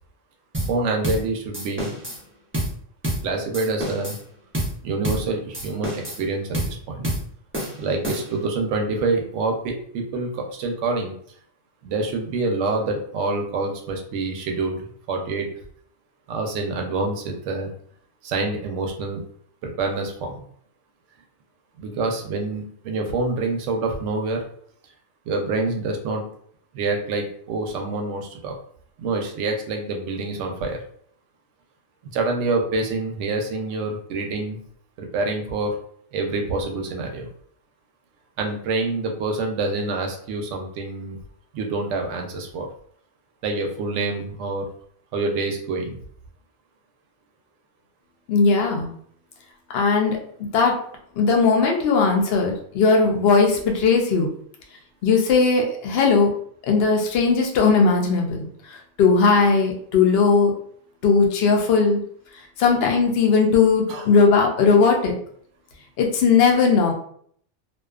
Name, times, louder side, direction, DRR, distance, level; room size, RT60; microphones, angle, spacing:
sound 1, 0.5-0.8 1.0-1.3 1.5-2.2 2.5-2.8 3.0-3.3 3.5-4.2 4.5-4.8 5.0-5.3 5.5-6.2 6.5-6.8 7.0-7.3 7.5-8.4, right 1 dB, 20° right, 0.4 m, -28 dB
voice 1, 0.7-1.9 3.2-4.2 4.8-7.1 7.8-11.1 11.8-15.5 16.3-17.7 18.2-19.2 19.6-20.4 21.8-24.5 25.3-26.2 26.7-28.6 29.0-30.8 32.1-34.6 35.0-35.7 36.1-37.3 38.4-41.2 41.5-42.7 43.4-44.7 45.1-46.0 63.9-64.0, right 3 dB, 85° right, 3 dB, 0.9 m, -26 dB
voice 2, 48.3-48.9 49.7-50.2 50.5-50.7 51.2-54.3 55.0-56.3 56.7-58.5 59.0-60.5 61.0-62.0 62.6-65.2 66.0-66.9, left 4 dB, 65° left, 2 dB, 0.7 m, -18 dB
2.6 x 2.2 x 2.3 m, 0.62 s
omnidirectional pair, 1.2 m